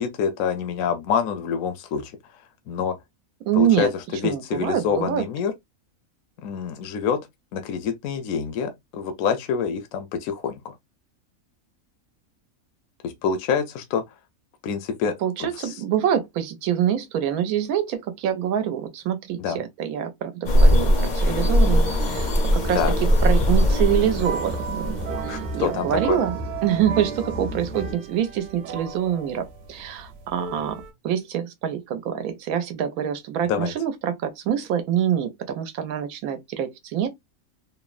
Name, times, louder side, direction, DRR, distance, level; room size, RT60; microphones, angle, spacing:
voice 1, 0.0-2.1 2.7-2.9 3.5-3.9 4.2-5.5 6.4-7.2 7.5-10.7 13.0-14.0 14.6-15.1 15.4-15.7 19.4-19.6 22.7-22.9 25.3-26.2 33.5-33.7, left 6 dB, 75° left, 0.9 m, -26 dB
voice 2, 3.5-3.9 4.2-5.2 15.2-22.8 23.2-25.0 25.2-26.4 26.6-37.1, right 9 dB, 85° right, 1.1 m, -25 dB
sound 1, 20.5-25.5, equal, 50° left, 0.5 m, -20 dB
sound 2, 21.3-27.9, right 1 dB, 40° right, 0.7 m, -34 dB
sound 3, 23.7-30.9, right 7 dB, 60° right, 1.0 m, -35 dB
3.2 x 2.0 x 2.4 m
omnidirectional pair, 1.5 m